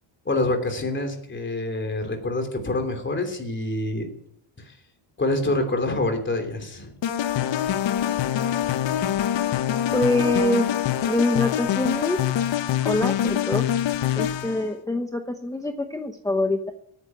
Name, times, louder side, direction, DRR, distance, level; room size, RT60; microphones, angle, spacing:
voice 1, 0.2-4.1 4.6-4.7 5.2-7.0, left 2 dB, 25° left, 4 dB, 3.2 m, -26 dB
sound 1, 7.0-14.7, left 10 dB, 60° left, 1.1 m, -25 dB
voice 2, 9.9-10.7 11.1-12.2 12.8-13.7 14.1-16.7, left 2 dB, 5° left, 4 dB, 1.0 m, -24 dB
17.0 x 9.7 x 8.0 m, 0.71 s
cardioid pair, 145°, 49 cm